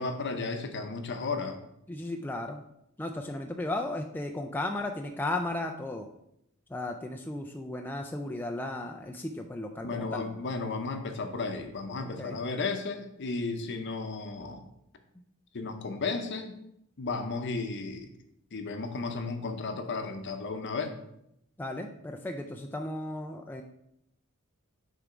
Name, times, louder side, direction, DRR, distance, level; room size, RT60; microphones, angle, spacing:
voice 1, 0.0-1.6 9.8-14.6 15.5-16.5 17.0-18.1 18.5-20.9, left 3 dB, 55° left, 6 dB, 0.7 m, -34 dB
voice 2, 1.9-2.6 3.0-6.1 6.7-10.2 12.0-12.4 21.6-23.6, left 2 dB, 10° left, 2 dB, 0.3 m, -35 dB
6.6 x 3.6 x 5.0 m, 0.78 s
head